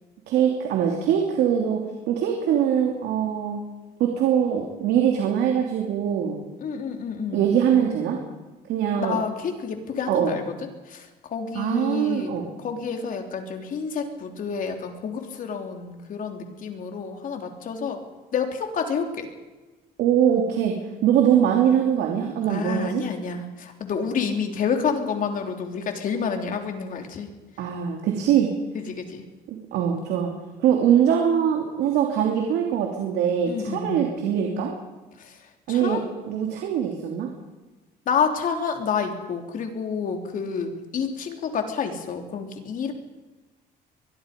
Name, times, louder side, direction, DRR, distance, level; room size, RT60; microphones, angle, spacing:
voice 1, 0.3-3.6 4.0-6.4 7.3-8.2 8.7-9.2 10.1-10.3 11.5-12.5 20.0-20.7 21.0-23.0 27.6-28.5 29.5-30.3 30.6-34.7 35.7-36.0 36.3-37.3, right 9 dB, 80° right, 1 dB, 3.1 m, -22 dB
voice 2, 6.6-7.5 9.0-10.6 10.9-12.3 12.6-18.0 18.3-19.3 22.5-27.3 28.7-29.2 33.4-34.1 35.2-36.0 38.1-42.9, left 6 dB, 55° left, 4 dB, 3.6 m, -29 dB
23.0 x 22.5 x 5.4 m, 1.2 s
cardioid pair, 110°, 17 cm